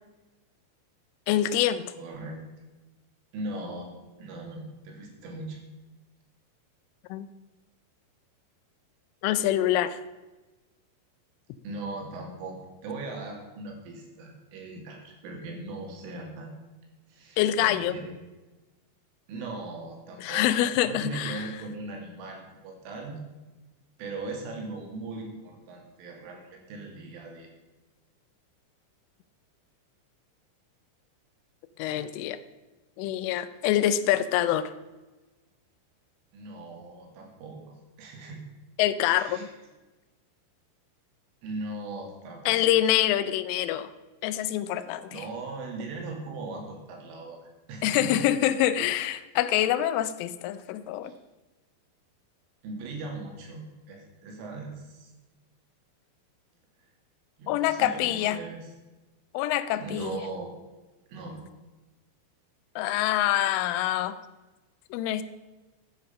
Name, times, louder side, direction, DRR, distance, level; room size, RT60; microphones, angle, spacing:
voice 1, 1.3-1.9 7.1-7.3 9.2-10.0 17.4-17.9 20.2-21.4 31.8-32.4 33.0-34.7 38.8-39.5 42.5-43.9 44.2-45.2 47.8-51.1 57.5-58.4 59.3-60.1 62.8-64.2 64.9-65.2, left 12 dB, 85° left, 13 dB, 3.2 m, -25 dB
voice 2, 2.0-2.4 3.3-3.9 4.2-5.6 11.6-16.5 17.1-18.2 19.3-20.5 20.8-23.2 24.0-27.5 36.3-37.6 38.0-38.5 39.1-39.5 41.4-42.6 45.1-48.1 51.0-51.2 52.6-55.1 57.4-58.7 59.8-60.5 61.1-61.4, right 3 dB, 85° right, 2 dB, 5.0 m, -39 dB
14.0 x 10.0 x 5.6 m, 1.2 s
omnidirectional pair, 5.6 m